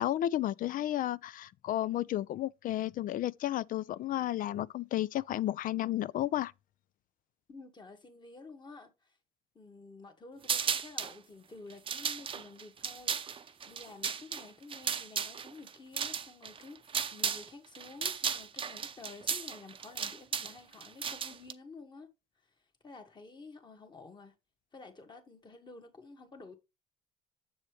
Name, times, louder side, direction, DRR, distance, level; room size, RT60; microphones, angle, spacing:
voice 1, 0.0-6.5, left 13 dB, 55° left, 0.4 m, -32 dB
voice 2, 7.5-9.2 9.6-22.1 22.8-24.3 24.7-26.6, left 3 dB, 25° left, 1.9 m, -51 dB
sound 1, 10.4-11.2 11.7-17.5 17.7-21.5, right 6 dB, 30° right, 0.7 m, -35 dB
7.2 x 7.1 x 3.3 m
cardioid pair, 110°, 17 cm